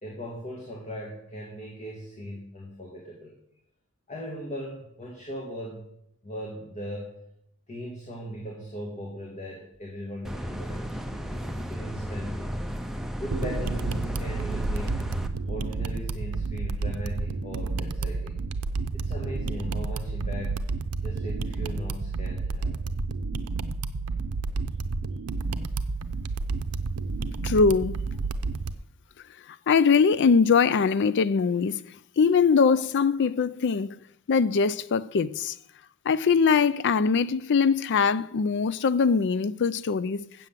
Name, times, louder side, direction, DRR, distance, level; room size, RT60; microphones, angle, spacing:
voice 1, 0.0-3.4 4.1-5.9 6.2-7.2 7.7-11.0 11.7-12.5 13.2-15.1 15.5-18.4 18.9-20.6 21.0-22.7 29.4-29.5, equal, 30° left, 1.8 m, -38 dB
sound 1, 10.2-15.3, equal, ahead, 0.7 m, -33 dB
sound 2, 13.3-28.7, right 3 dB, 85° right, 0.6 m, -30 dB
voice 2, 27.4-28.0 29.7-31.8 32.2-34.0 34.3-35.6 36.1-40.2, left 5 dB, 55° left, 0.4 m, -22 dB
7.7 x 7.7 x 7.4 m
head